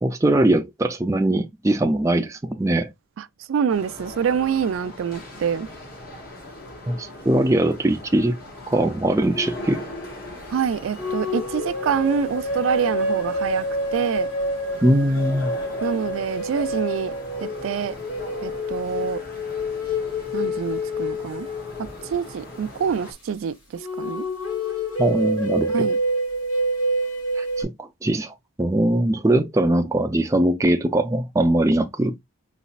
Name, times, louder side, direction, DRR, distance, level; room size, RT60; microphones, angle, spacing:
voice 1, 0.0-2.9 6.9-8.4 8.7-9.8 14.8-15.5 25.0-25.9 27.4-32.1, right 1 dB, 15° right, 0.4 m, -21 dB
voice 2, 3.2-5.7 10.5-13.7 13.9-14.3 15.8-17.1 17.4-18.0 18.4-19.2 20.3-21.5 22.1-24.3 25.7-26.0, right 7 dB, 80° right, 0.3 m, -26 dB
sound 1, 3.7-23.1, left 1 dB, 50° left, 1.6 m, -40 dB
sound 2, 11.0-22.4 23.8-27.6, equal, 80° left, 2.7 m, -27 dB
4.1 x 4.1 x 2.3 m
head